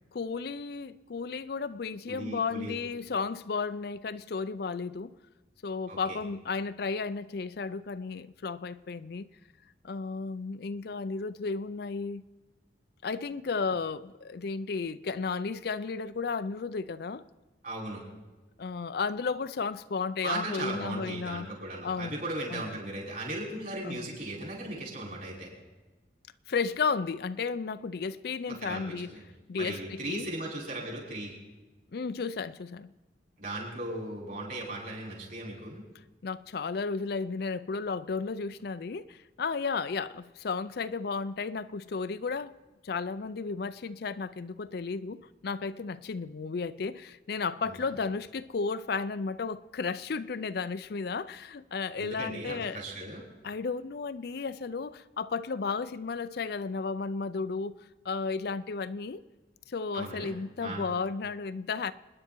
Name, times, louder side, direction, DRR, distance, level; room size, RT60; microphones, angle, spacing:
voice 1, 0.1-5.1 5.6-9.3 9.8-12.3 13.0-17.2 18.6-21.5 21.8-22.2 22.5-22.8 23.8-24.1 26.5-29.1 29.5-30.3 31.9-32.9 36.2-42.5 42.8-52.8 53.4-57.8 58.0-59.2 59.7-61.9, left 4 dB, 55° left, 0.5 m, -33 dB
voice 2, 2.1-2.8 5.9-6.2 17.6-18.0 20.2-25.5 28.5-29.2 29.6-31.3 33.4-35.8 47.6-47.8 52.0-53.2 59.9-60.3 60.6-60.8, right 2 dB, 50° right, 5.9 m, -37 dB
27.5 x 10.5 x 4.5 m
head